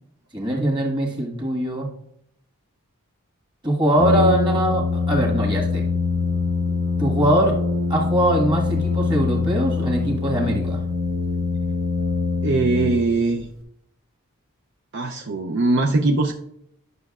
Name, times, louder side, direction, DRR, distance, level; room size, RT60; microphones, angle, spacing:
voice 1, 0.3-1.9 3.6-5.8 7.0-7.6 7.9-10.8, right 1 dB, 20° right, -1 dB, 1.5 m, -22 dB
Brass instrument, 4.0-13.4, left 4 dB, 85° right, 2.2 m, -23 dB
voice 2, 12.4-13.5 14.9-16.3, right 3 dB, 55° right, 2 dB, 0.5 m, -21 dB
11.0 x 6.3 x 2.4 m, 0.74 s
head